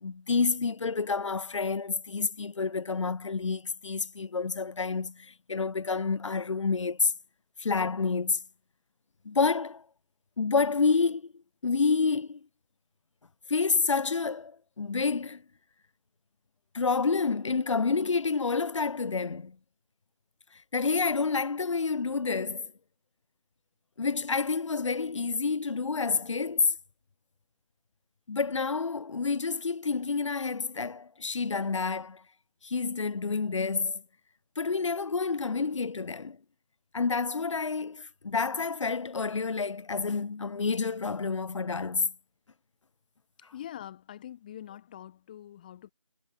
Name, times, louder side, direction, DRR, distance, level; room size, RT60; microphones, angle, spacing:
voice 1, 0.0-7.1 7.6-8.4 9.2-9.8 10.4-11.3 11.6-12.4 13.5-15.4 16.7-19.6 20.7-22.7 24.0-26.7 28.3-32.2 32.6-34.0 34.6-36.4 36.9-42.1, left 4 dB, 65° left, 0.5 m, -28 dB
voice 2, 43.5-45.9, left 11 dB, 15° left, 2.0 m, -44 dB
figure-of-eight pair, 165°, 17 cm